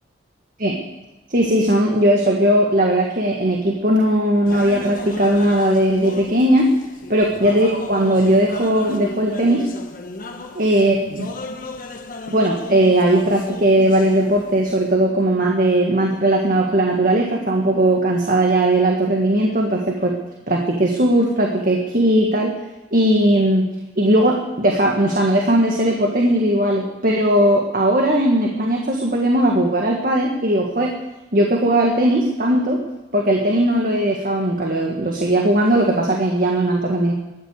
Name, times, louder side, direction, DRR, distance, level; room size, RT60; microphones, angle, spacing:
voice 1, 1.3-6.7 7.1-9.7 10.5-11.3 12.3-20.2 20.5-22.5 22.9-23.6 24.0-30.9 31.3-32.8 33.1-37.1, right 1 dB, 45° right, 0 dB, 1.8 m, -18 dB
sound 1, 4.5-14.9, left 2 dB, 45° left, 1.4 m, -34 dB
13.0 x 10.0 x 8.3 m, 1.0 s
head